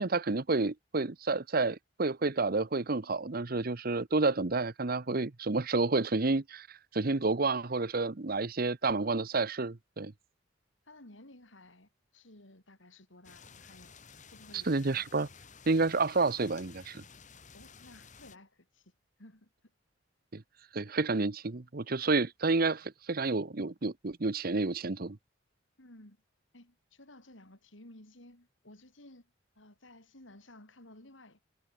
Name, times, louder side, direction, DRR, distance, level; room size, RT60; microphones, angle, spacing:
voice 1, 0.0-10.1 14.7-15.3 15.7-17.0 20.3-20.4 20.7-25.2, right 3 dB, 50° right, 0.9 m, -30 dB
voice 2, 10.8-13.9 14.3-15.0 17.5-18.9 19.2-19.5 25.8-26.2 26.5-31.4, left 1 dB, 75° left, 4.9 m, -55 dB
sound 1, 13.2-18.4, left 5 dB, 40° left, 2.7 m, -54 dB
head